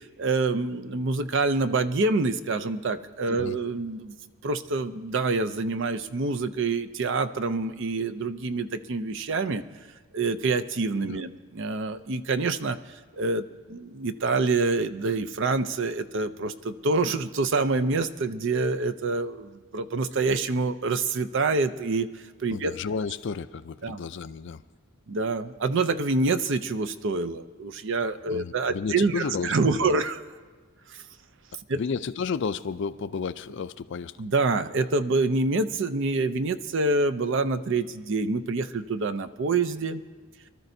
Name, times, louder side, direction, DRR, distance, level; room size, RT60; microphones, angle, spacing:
voice 1, 0.2-4.1 4.4-9.6 10.1-12.8 13.1-22.7 23.8-24.0 25.1-30.2 30.9-31.0 31.7-31.8 34.2-40.0, right 3 dB, 55° right, 11 dB, 0.5 m, -26 dB
voice 2, 22.5-24.6 28.3-30.0 31.7-34.1, left 5 dB, 55° left, 13 dB, 0.4 m, -32 dB
24.5 x 13.0 x 2.7 m, 1.4 s
head